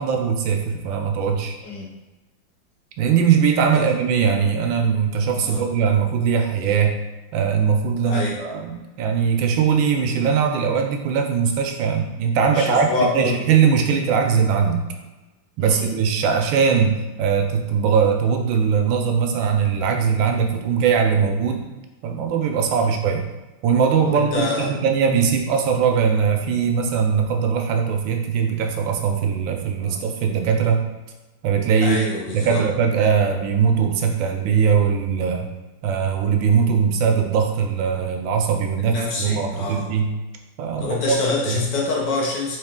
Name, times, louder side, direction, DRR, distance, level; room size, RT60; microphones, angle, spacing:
voice 1, 0.0-1.5 3.0-7.0 7.3-14.8 15.6-21.7 22.0-23.3 23.6-30.8 31.4-32.0 32.3-35.5 35.8-40.1 40.6-41.2 41.5-41.6, right 6 dB, 80° right, 4 dB, 1.3 m, -20 dB
voice 2, 8.1-8.4 12.5-13.4 15.6-15.9 22.7-22.9 24.0-24.7 29.8-30.0 31.8-32.6 38.8-39.9 40.8-42.6, left 3 dB, 65° left, -3 dB, 1.5 m, -26 dB
3.9 x 3.0 x 3.6 m, 1.1 s
omnidirectional pair, 2.1 m